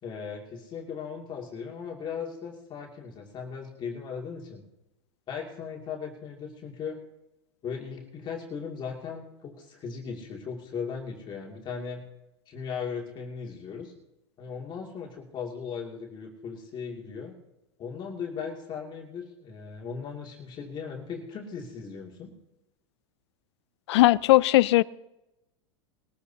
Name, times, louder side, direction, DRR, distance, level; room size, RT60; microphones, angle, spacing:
voice 1, 0.0-4.6 5.3-7.0 7.6-12.0 12.5-13.9 14.4-17.3 17.8-22.3, left 6 dB, 30° left, 2.5 m, -37 dB
voice 2, 23.9-24.8, left 17 dB, 70° left, 0.4 m, -18 dB
21.0 x 13.5 x 2.8 m
hypercardioid pair, 115°, 15 cm